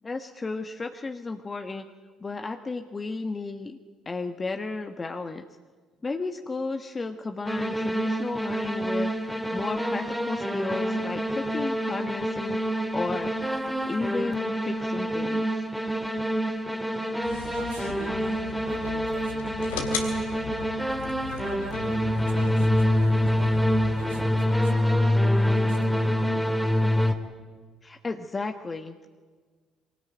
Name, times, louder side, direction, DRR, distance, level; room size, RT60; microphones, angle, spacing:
voice 1, 0.0-1.8 2.2-3.8 4.0-5.4 6.0-9.1 9.5-13.3 13.9-15.4 27.8-29.1, left 3 dB, 30° left, 6 dB, 1.4 m, -33 dB
sound 1, 7.4-27.1, equal, ahead, 3.0 m, -26 dB
sound 2, 17.2-24.2, left 6 dB, 80° left, 2.8 m, -38 dB
voice 2, 17.5-20.7 21.2-23.7 23.9-26.2, right 7 dB, 85° right, 4 dB, 2.5 m, -47 dB
23.5 x 18.5 x 9.1 m, 1.5 s
hypercardioid pair, 55°, 0 cm